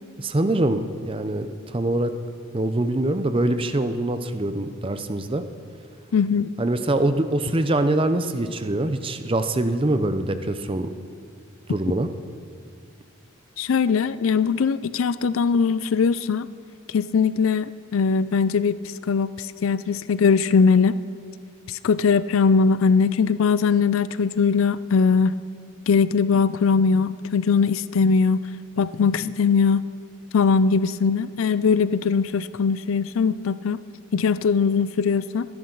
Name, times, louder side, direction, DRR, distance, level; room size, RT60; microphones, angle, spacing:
voice 1, 0.2-2.1 2.5-5.4 6.6-10.9 11.7-12.1, right 1 dB, 25° right, 9 dB, 0.6 m, -24 dB
voice 2, 6.1-6.5 13.6-16.5 16.9-21.0 21.7-25.4 25.9-28.5 28.8-29.9 30.3-33.8 34.1-35.5, left 5 dB, 85° left, 16 dB, 0.4 m, -20 dB
24.0 x 10.5 x 3.9 m, 2.2 s
head